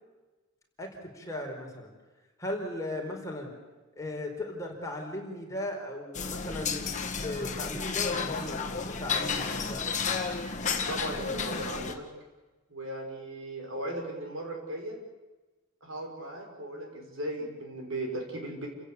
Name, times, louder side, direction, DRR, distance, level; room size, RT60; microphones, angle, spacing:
voice 1, 0.8-1.9 2.4-3.5 4.0-9.9, left 1 dB, 15° left, 0 dB, 4.7 m, -37 dB
sound 1, 6.1-11.9, left 5 dB, 35° left, 1.9 m, -32 dB
voice 2, 10.9-12.0 12.7-15.0 15.8-18.7, right 1 dB, 70° right, 2 dB, 6.0 m, -37 dB
29.5 x 16.0 x 8.4 m, 1.2 s
head